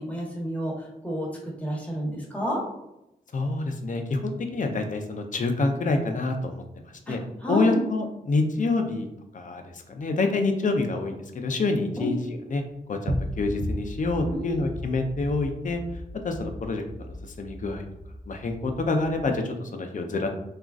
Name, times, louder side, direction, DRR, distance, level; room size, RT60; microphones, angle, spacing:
voice 1, 0.0-2.6 7.1-7.8 12.0-12.2 14.3-14.7, equal, 10° left, -3 dB, 1.1 m, -30 dB
voice 2, 3.3-6.6 7.1-7.2 7.5-9.1 9.3-12.6 12.9-15.8 16.2-17.8 18.3-20.3, left 3 dB, 50° left, 5 dB, 0.5 m, -27 dB
sound 1, 13.1-19.4, equal, 65° right, 0.5 m, -36 dB
3.5 x 2.4 x 2.4 m, 0.86 s
cardioid pair, 65°, 16 cm